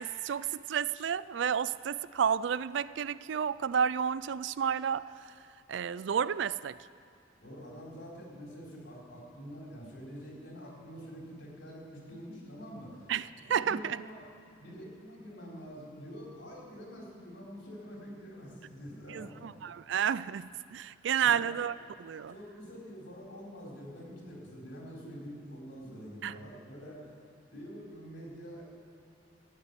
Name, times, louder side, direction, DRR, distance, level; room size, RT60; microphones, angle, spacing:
voice 1, 0.0-5.3 5.7-6.8 13.1-14.0 19.1-22.3 26.2-26.4, right 8 dB, 65° right, 0.4 m, -31 dB
voice 2, 7.4-13.1 13.5-14.3 14.6-19.6 21.2-21.5 22.3-27.2 27.5-28.6, equal, 70° left, 4.2 m, -46 dB
14.0 x 8.7 x 9.6 m
head